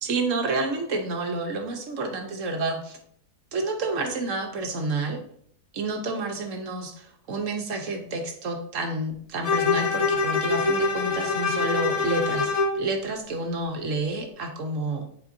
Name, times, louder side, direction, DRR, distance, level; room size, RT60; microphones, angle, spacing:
voice 1, 0.0-3.0 3.5-5.2 5.7-15.1, right 2 dB, 60° right, 4 dB, 1.1 m, -29 dB
Bowed string instrument, 9.4-12.8, left 4 dB, 65° left, 1.4 m, -24 dB
8.9 x 4.3 x 2.6 m, 0.64 s
omnidirectional pair, 1.7 m